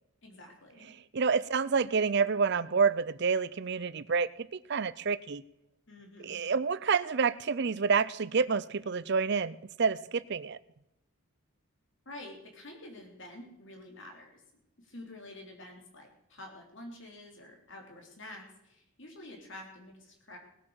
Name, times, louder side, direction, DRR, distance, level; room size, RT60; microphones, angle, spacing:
voice 1, 0.2-0.9 5.9-6.4 12.1-14.4 14.8-20.4, left 1 dB, 55° left, 2 dB, 3.5 m, -48 dB
voice 2, 1.1-5.4 6.2-10.6, right 5 dB, 50° right, 18 dB, 0.5 m, -28 dB
19.0 x 8.6 x 6.5 m, 0.84 s
head